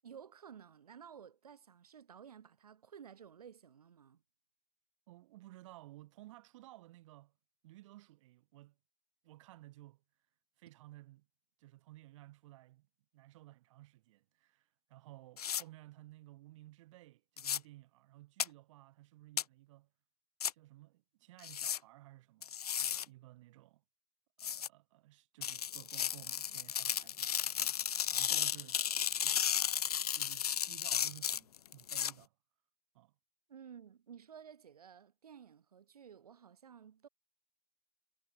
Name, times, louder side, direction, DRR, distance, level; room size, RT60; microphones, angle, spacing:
voice 1, 0.0-4.2 33.5-37.1, right 8 dB, 65° right, 4.2 m, -54 dB
voice 2, 5.1-7.3 7.6-8.8 9.2-10.0 10.6-11.3 11.6-12.9 13.1-19.9 20.5-23.8 24.4-27.8 28.1-28.8 29.2-29.4 30.1-32.3 32.9-33.1, right 17 dB, 50° right, 5.4 m, -56 dB
sound 1, 15.4-15.6 17.4-17.6 18.4-18.5 19.4-19.5 20.4-20.5 21.4-21.8 22.4-23.0 24.4-24.7 25.4-32.1, left 9 dB, 70° left, 0.5 m, -34 dB
figure-of-eight pair, 100°, 21 cm